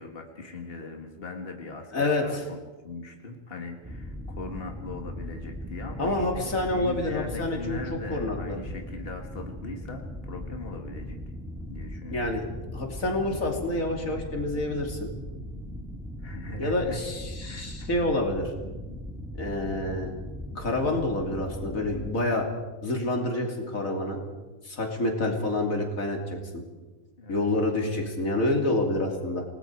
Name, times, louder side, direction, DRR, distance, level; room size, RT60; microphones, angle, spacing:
voice 1, 0.0-2.6 2.8-11.2 11.7-12.2 16.2-17.0 17.4-17.9 27.2-27.5, left 3 dB, 45° left, 3 dB, 2.1 m, -40 dB
voice 2, 1.9-2.4 6.0-8.6 12.1-12.4 12.7-15.1 16.6-18.5 19.4-20.1 20.6-22.5 22.8-24.2 24.6-26.6 27.3-29.4, left 2 dB, 85° left, 2 dB, 3.3 m, -28 dB
sound 1, 3.8-22.1, equal, ahead, 1.7 m, -39 dB
29.0 x 19.5 x 4.7 m, 1.3 s
omnidirectional pair, 1.4 m